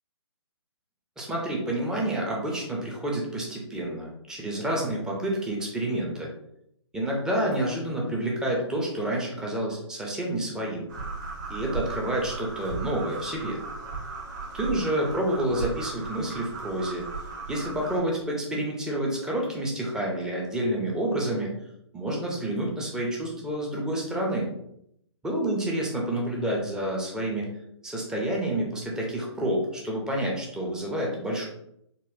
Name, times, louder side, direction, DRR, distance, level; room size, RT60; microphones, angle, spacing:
voice 1, 1.2-6.3 6.9-10.8 11.5-13.6 14.5-17.1 17.5-21.5 21.9-24.5 25.2-27.5 27.8-31.5, right 1 dB, 5° right, -2 dB, 0.4 m, -29 dB
sound 1, 10.9-18.0, right 4 dB, 45° right, 0.9 m, -36 dB
4.0 x 2.0 x 2.6 m, 0.76 s
figure-of-eight pair, 140°, 15 cm